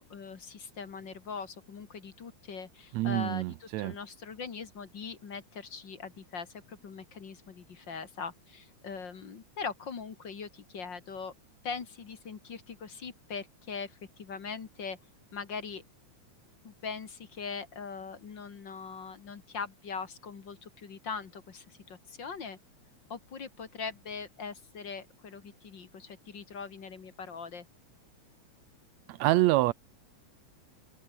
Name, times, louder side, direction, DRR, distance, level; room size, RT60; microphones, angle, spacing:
voice 1, 0.0-11.3 11.6-15.0 15.3-15.8 16.6-22.6 23.1-27.7, left 5 dB, 40° left, 2.2 m, -41 dB
voice 2, 2.9-4.0 29.1-29.7, right 18 dB, 75° right, 1.8 m, -26 dB
open air
omnidirectional pair, 3.5 m